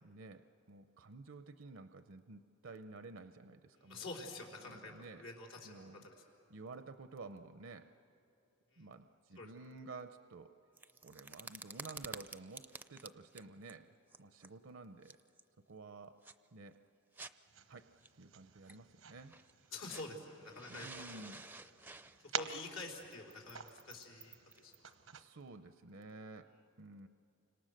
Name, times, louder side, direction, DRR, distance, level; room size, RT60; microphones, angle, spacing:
voice 1, 0.0-4.0 4.7-5.2 5.6-6.1 6.5-7.9 8.8-10.5 11.0-13.9 14.2-15.2 15.7-16.2 16.5-16.8 17.7-17.9 18.2-19.3 20.7-21.4 25.1-26.5 26.8-27.1, right 3 dB, 70° right, 9 dB, 0.7 m, -52 dB
voice 2, 3.7-6.1 8.7-8.9 9.4-9.5 19.7-20.9 21.1-21.3 22.3-24.7, left 2 dB, 85° left, 0 dB, 4.2 m, -47 dB
sound 1, 10.8-13.7 14.1-14.5 15.1-15.4 16.2-16.3 17.1-17.3 18.0-18.1 18.7-18.8 19.3-20.1 20.4-24.9, right 3 dB, 10° right, 0.5 m, -51 dB
sound 2, 17.5-25.2, right 8 dB, 90° right, 1.0 m, -49 dB
29.5 x 26.0 x 6.6 m, 2.8 s
head